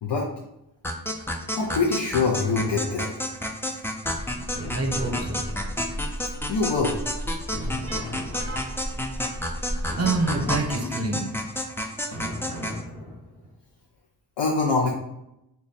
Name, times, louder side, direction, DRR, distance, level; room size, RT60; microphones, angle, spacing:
sound 1, 0.8-12.8, left 1 dB, 5° left, 0.3 m, -31 dB
voice 1, 1.6-3.1 6.5-7.0 14.4-14.9, left 4 dB, 90° left, -2 dB, 0.5 m, -24 dB
sound 2, 2.5-3.5 4.6-6.1 7.5-8.9 9.9-11.3 12.1-13.5, left 1 dB, 65° left, 0.9 m, -38 dB
sound 3, 4.1-10.7, equal, 40° left, 0.6 m, -36 dB
voice 2, 4.7-5.4 7.9-8.8 10.0-11.3, right 2 dB, 40° right, 3 dB, 0.8 m, -28 dB
3.0 x 2.2 x 4.0 m, 0.85 s
cardioid pair, 60°, 40 cm